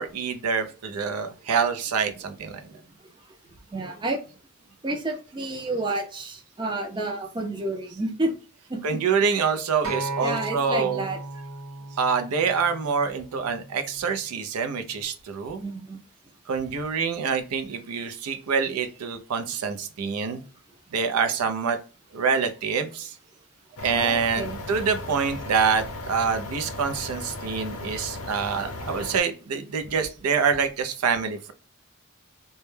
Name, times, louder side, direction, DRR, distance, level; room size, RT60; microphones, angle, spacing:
voice 1, 0.0-2.6 8.8-11.1 12.0-15.6 16.5-20.4 20.9-21.8 22.1-23.1 23.8-31.5, right 6 dB, 90° right, 8 dB, 0.4 m, -26 dB
voice 2, 2.7-3.1 3.7-4.2 4.8-8.3 8.7-9.5 10.2-11.2 15.6-16.0 24.0-24.6, right 2 dB, 20° right, 3 dB, 0.4 m, -30 dB
Acoustic guitar, 9.8-14.1 14.9-15.0, right 3 dB, 60° right, 0.9 m, -36 dB
sound 1, 23.8-29.2, left 2 dB, 70° left, 0.6 m, -36 dB
2.2 x 2.1 x 3.1 m, 0.37 s
head